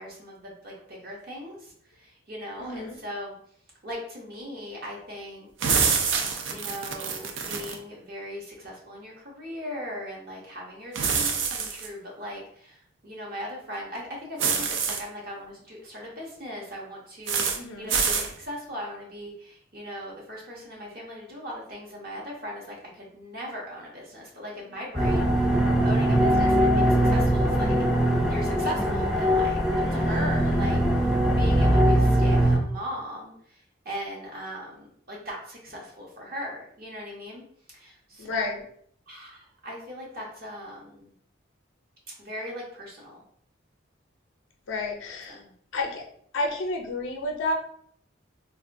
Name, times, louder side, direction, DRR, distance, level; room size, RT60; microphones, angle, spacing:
voice 1, 0.0-3.3 3.8-5.5 6.5-25.5 25.8-27.8 28.3-37.4 37.7-38.4 39.1-41.1 42.2-43.2 45.3-45.5, equal, 50° right, -3 dB, 0.8 m, -39 dB
voice 2, 2.6-3.0 17.5-17.9 29.9-30.7 38.2-38.6 44.7-45.4 45.7-46.0 46.3-47.5, left 2 dB, 75° left, 2 dB, 0.5 m, -31 dB
sound 1, 5.6-7.8 10.9-11.9 14.4-15.0 17.3-17.6 17.9-18.3, right 6 dB, 70° right, 0.4 m, -26 dB
sound 2, 24.9-32.6, right 1 dB, ahead, 0.3 m, -21 dB
3.3 x 2.2 x 2.5 m, 0.63 s
head